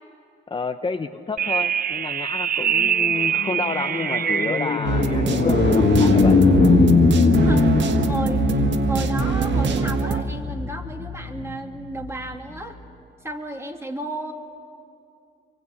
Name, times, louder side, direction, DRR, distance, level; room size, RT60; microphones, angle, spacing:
voice 1, 0.5-6.4, left 4 dB, 25° left, 7 dB, 0.9 m, -30 dB
sound 1, 1.4-4.9, right 8 dB, 50° right, 0.7 m, -24 dB
sound 2, 2.8-12.3, left 4 dB, 40° left, 1.8 m, -21 dB
sound 3, 4.8-10.2, right 6 dB, 65° right, 1.6 m, -23 dB
voice 2, 7.4-12.8 13.2-14.3, right 1 dB, 15° right, 4 dB, 2.7 m, -33 dB
24.0 x 23.0 x 9.7 m, 2.6 s
cardioid pair, 90°, 20 cm